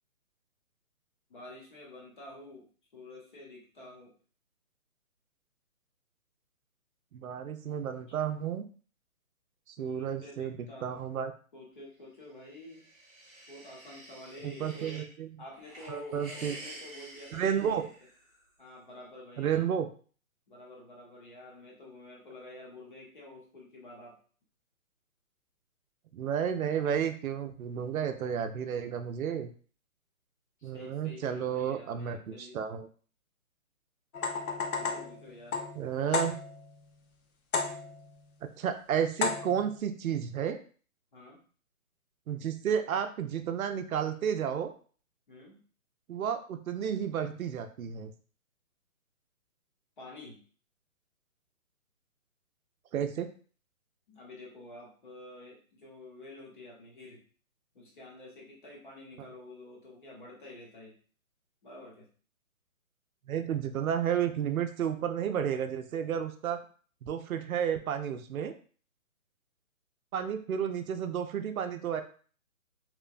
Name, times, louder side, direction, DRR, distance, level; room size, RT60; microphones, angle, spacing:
voice 1, 1.3-2.7 2.9-4.1 9.8-11.1 11.5-12.8 13.5-15.0 15.4-17.9 18.6-19.7 20.5-24.2 30.6-32.6 34.8-35.6 41.1-41.4 45.3-45.6 50.0-50.4 54.1-57.2 57.7-61.0 61.6-62.1, left 2 dB, 35° left, -3 dB, 0.8 m, -49 dB
voice 2, 7.1-8.6 9.7-11.3 14.4-15.3 15.9-16.6 17.3-17.9 19.4-19.9 26.1-29.5 30.6-32.9 35.8-36.3 38.6-40.6 42.3-44.7 46.1-48.1 52.9-53.3 63.3-66.6 67.0-68.5 70.1-72.0, right 8 dB, 80° right, 8 dB, 0.5 m, -32 dB
sound 1, 12.4-15.1 15.5-18.4, right 1 dB, 25° right, 0.6 m, -49 dB
sound 2, 34.1-36.7 37.5-38.1 39.2-39.8, left 4 dB, 90° left, 0.7 m, -33 dB
2.9 x 2.1 x 2.4 m, 0.41 s
hypercardioid pair, 170°, 42 cm